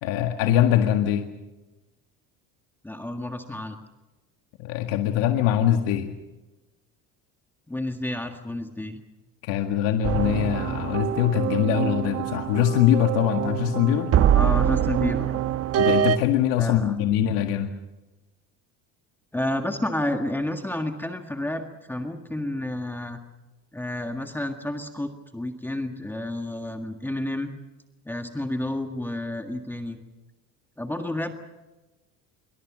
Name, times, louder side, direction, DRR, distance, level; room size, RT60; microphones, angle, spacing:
voice 1, 0.0-1.3 4.6-6.1 9.4-14.1 15.8-17.7, left 11 dB, 80° left, 5 dB, 2.0 m, -23 dB
voice 2, 2.8-3.8 7.7-9.0 14.3-15.3 16.6-16.9 19.3-23.2 23.7-27.5 28.1-30.0 30.8-31.3, left 1 dB, 5° left, 4 dB, 1.7 m, -30 dB
sound 1, 10.0-16.2, right 10 dB, 40° right, 1.1 m, -24 dB
26.0 x 23.5 x 6.2 m, 1.1 s
cardioid pair, 140°, 37 cm